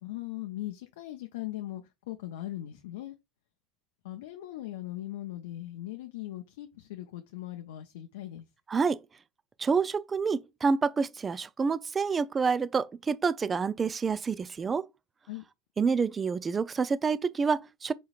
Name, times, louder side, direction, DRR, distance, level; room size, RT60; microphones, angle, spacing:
voice 1, 0.0-3.1 4.0-8.4 15.3-15.4, left 15 dB, 75° left, 0.5 m, -39 dB
voice 2, 8.7-9.0 9.6-14.9 15.8-17.9, right 5 dB, 25° right, 0.4 m, -28 dB
4.1 x 3.8 x 2.4 m
hypercardioid pair, 90°, 0 cm